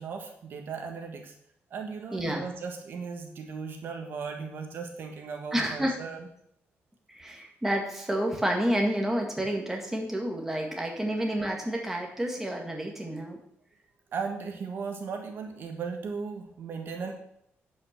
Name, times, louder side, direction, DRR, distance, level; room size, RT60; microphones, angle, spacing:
voice 1, 0.0-1.3 1.7-6.3 10.5-10.6 14.1-17.1, right 5 dB, 50° right, 4 dB, 1.5 m, -37 dB
voice 2, 2.1-2.4 5.5-6.0 7.1-13.4, right 1 dB, 5° right, 1 dB, 1.8 m, -29 dB
11.0 x 5.6 x 6.7 m, 0.72 s
cardioid pair, 160°, 5 cm